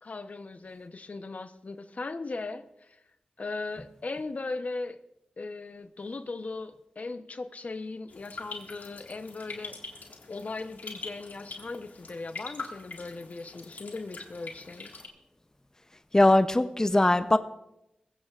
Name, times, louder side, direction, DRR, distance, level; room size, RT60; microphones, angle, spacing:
voice 1, 0.0-3.0 3.4-5.0 5.4-9.8 10.3-14.9, left 3 dB, 55° left, 9 dB, 0.9 m, -38 dB
sound 1, 8.1-15.1, left 3 dB, 80° left, 1.8 m, -43 dB
voice 2, 16.1-17.4, left 1 dB, 20° left, 11 dB, 0.6 m, -21 dB
20.5 x 16.0 x 2.5 m, 0.87 s
cardioid pair, 40°, 3 cm